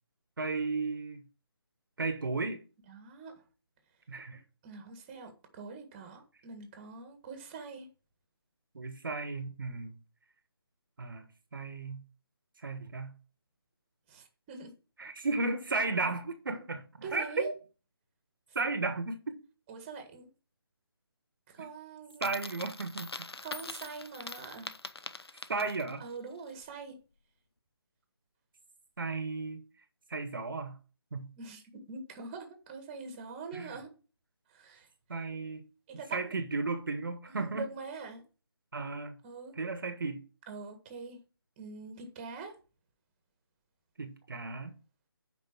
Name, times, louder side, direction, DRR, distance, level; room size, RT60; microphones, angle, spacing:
voice 1, 0.4-1.3 2.0-2.6 4.1-4.4 8.7-10.0 11.0-11.3 11.5-12.0 12.6-13.1 15.0-17.5 18.5-19.4 21.6-21.7 22.2-23.3 25.5-26.0 29.0-29.6 30.1-30.8 31.1-31.3 33.5-33.7 35.1-35.7 36.1-37.7 38.7-39.2 39.6-40.2 44.0-44.7, right 3 dB, 55° right, 1.2 m, -34 dB
voice 2, 2.9-3.3 4.6-7.9 14.1-14.7 17.0-17.5 19.7-20.3 21.5-22.3 23.4-24.7 25.5-25.6 26.0-27.0 31.4-33.9 34.5-34.9 35.9-36.4 37.3-38.2 39.2-39.5 40.5-41.2 41.6-42.6, right 4 dB, 20° right, 1.6 m, -44 dB
Coin (dropping), 22.1-26.0, left 3 dB, 75° left, 0.8 m, -43 dB
8.3 x 5.2 x 6.0 m
figure-of-eight pair, 155°, 13 cm